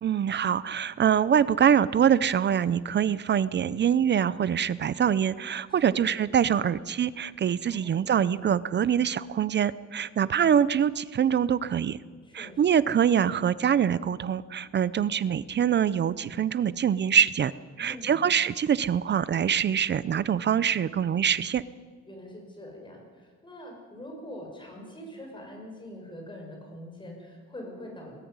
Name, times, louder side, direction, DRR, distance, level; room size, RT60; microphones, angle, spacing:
voice 1, 0.0-12.0 12.3-17.5 17.8-21.6, right 8 dB, 40° right, 18 dB, 0.5 m, -24 dB
voice 2, 5.7-6.1 7.7-8.1 12.2-12.6 17.8-18.2 22.1-28.1, left 1 dB, 15° left, 1 dB, 6.0 m, -44 dB
21.0 x 14.0 x 9.6 m, 1.5 s
cardioid pair, 155°, 29 cm